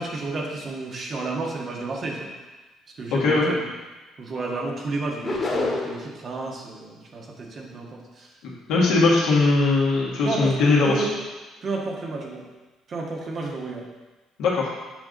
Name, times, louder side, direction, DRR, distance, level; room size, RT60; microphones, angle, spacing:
voice 1, 0.0-2.3 3.0-3.6 4.2-8.3 10.2-10.6 10.8-11.1 11.6-12.4 12.9-13.8, right 3 dB, 45° right, -1 dB, 1.5 m, -31 dB
voice 2, 3.1-3.5 8.7-11.0 14.4-14.7, left 3 dB, 75° left, -5 dB, 1.9 m, -20 dB
sound 1, 5.2-6.1, left 2 dB, 35° left, 1.8 m, -26 dB
7.0 x 5.0 x 3.9 m, 1.2 s
hypercardioid pair, 60°, 0 cm